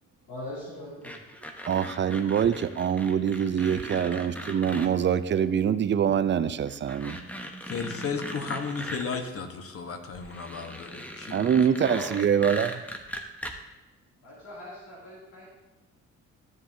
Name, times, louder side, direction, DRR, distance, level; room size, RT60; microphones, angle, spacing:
voice 1, 0.3-1.2 11.5-12.2 14.2-15.5, left 1 dB, 85° left, -7 dB, 2.7 m, -40 dB
sound 1, 1.0-4.9 6.1-6.2 6.7-9.2 10.1-13.5, equal, 5° left, 0.9 m, -39 dB
voice 2, 1.7-7.2 11.3-12.8, right 8 dB, 40° right, 12 dB, 0.5 m, -25 dB
voice 3, 7.7-11.5, left 5 dB, 50° left, 6 dB, 1.2 m, -34 dB
13.0 x 7.2 x 2.7 m, 1.1 s
cardioid pair, 90°, 30 cm